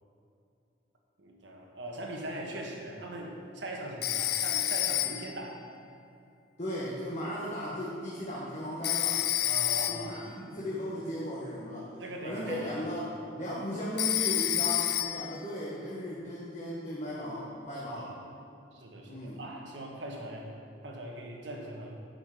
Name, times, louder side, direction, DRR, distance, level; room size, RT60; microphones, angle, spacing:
voice 1, 1.2-5.7 9.4-10.2 12.0-12.8 18.0-18.2 18.7-20.5 20.8-21.9, right 1 dB, 70° right, 0 dB, 1.6 m, -41 dB
Telephone, 4.0-5.4 8.8-10.2 14.0-15.4, left 13 dB, 55° left, 0.4 m, -29 dB
voice 2, 6.6-9.2 9.9-11.9 12.2-18.1 19.1-19.4, equal, 35° left, -7 dB, 1.5 m, -36 dB
10.0 x 6.0 x 7.7 m, 2.6 s
head